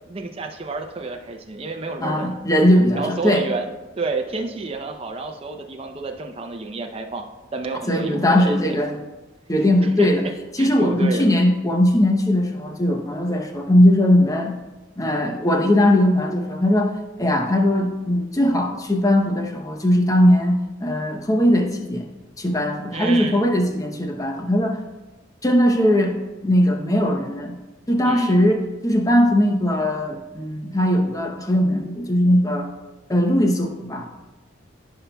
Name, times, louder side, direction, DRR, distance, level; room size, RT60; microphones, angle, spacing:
voice 1, 0.1-2.4 2.9-7.3 7.5-8.6 10.0-11.3 22.9-23.5 28.0-28.4, right 3 dB, 30° right, 4 dB, 0.6 m, -30 dB
voice 2, 2.0-3.5 7.9-9.0 9.5-10.3 10.5-14.6 15.0-22.1 22.4-24.8 25.4-27.6 27.9-32.7 33.1-34.1, left 1 dB, 20° left, 3 dB, 0.8 m, -19 dB
14.5 x 5.7 x 2.3 m, 1.1 s
head